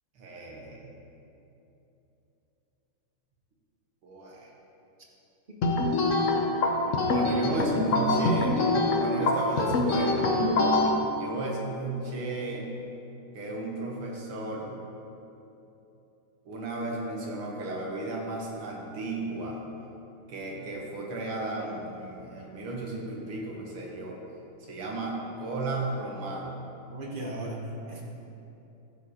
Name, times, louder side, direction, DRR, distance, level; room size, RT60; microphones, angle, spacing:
voice 1, 0.2-0.9 4.0-4.5 7.0-8.6 9.0-10.3 11.2-12.7 13.3-14.8 16.5-19.6 20.3-24.2 24.7-26.6, right 2 dB, 80° right, -2 dB, 2.3 m, -34 dB
sound 1, 5.6-10.9, left 2 dB, 60° left, 0.8 m, -24 dB
voice 2, 26.9-28.0, right 1 dB, 45° right, -1 dB, 0.6 m, -36 dB
13.5 x 5.1 x 4.9 m, 3.0 s
omnidirectional pair, 2.4 m